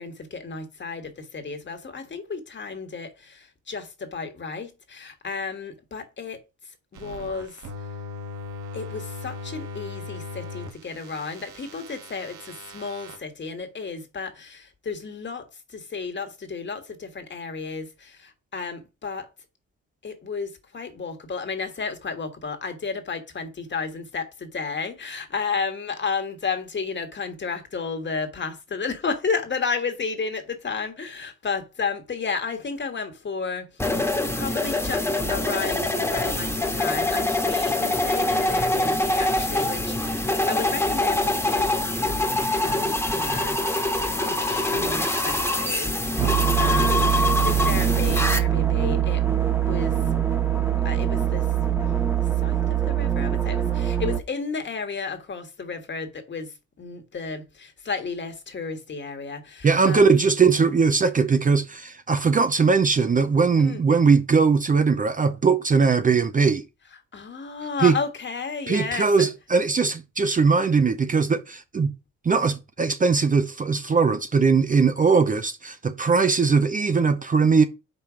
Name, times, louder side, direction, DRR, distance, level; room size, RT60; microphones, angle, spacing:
voice 1, 0.0-6.4 6.9-7.6 8.7-15.5 15.7-19.3 20.0-41.7 42.0-43.6 44.3-49.2 49.6-49.9 50.8-51.5 51.8-52.0 52.4-56.5 56.8-60.1 63.6-63.8 67.1-69.3, left 5 dB, 40° left, 1.6 m, -32 dB
sound 1, 6.9-13.2, left 3 dB, 75° right, 1.6 m, -39 dB
sound 2, 33.8-48.4, left 1 dB, 10° left, 1.4 m, -24 dB
sound 3, 46.2-54.2, right 10 dB, 10° right, 1.0 m, -23 dB
voice 2, 59.6-66.6 67.8-68.0 68.7-71.9 72.2-77.6, right 5 dB, 25° right, 0.6 m, -20 dB
5.4 x 4.4 x 6.0 m
cardioid pair, 90°, 30 cm